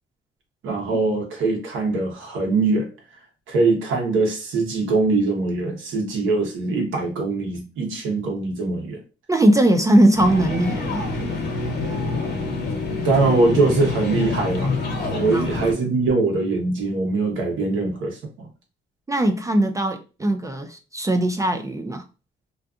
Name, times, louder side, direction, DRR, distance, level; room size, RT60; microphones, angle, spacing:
voice 1, 0.6-2.9 3.5-9.0 13.0-14.7 15.1-18.5, right 3 dB, 80° right, 1.0 m, -22 dB
voice 2, 9.3-11.1 15.3-15.5 19.1-22.0, right 1 dB, 15° right, 0.3 m, -20 dB
sound 1, 10.2-15.7, left 3 dB, 55° left, 1.0 m, -26 dB
2.6 x 2.5 x 2.3 m
cardioid pair, 90°, 20 cm